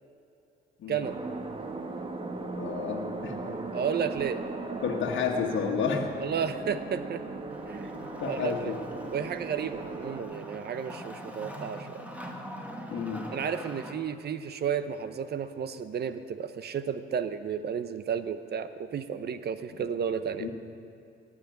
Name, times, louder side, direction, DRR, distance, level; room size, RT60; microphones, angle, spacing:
voice 1, 0.9-1.2 3.5-4.4 6.2-7.2 7.7-7.9 8.3-8.8 9.1-12.0 13.3-20.5, right 7 dB, 55° right, 11 dB, 0.9 m, -32 dB
sound 1, 1.0-10.2, right 3 dB, 25° right, 1.3 m, -37 dB
voice 2, 2.6-3.4 4.8-6.1 7.8-7.9 8.2-8.8 12.9-13.3 20.4-20.5, left 6 dB, 70° left, 0 dB, 1.5 m, -31 dB
Wood, 7.5-13.9, equal, 5° right, 1.9 m, -43 dB
18.0 x 6.4 x 9.4 m, 2.7 s
cardioid pair, 90°, 20 cm